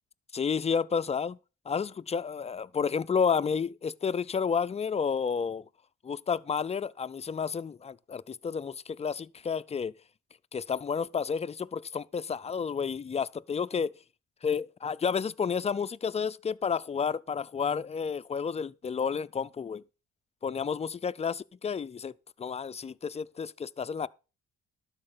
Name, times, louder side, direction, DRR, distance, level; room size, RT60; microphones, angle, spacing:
voice 1, 0.3-1.4 1.7-5.6 6.0-9.9 10.5-13.9 14.4-19.8 20.4-24.1, left 6 dB, 20° left, 0.4 m, -31 dB
12.0 x 4.8 x 7.0 m
cardioid pair, 90°, 30 cm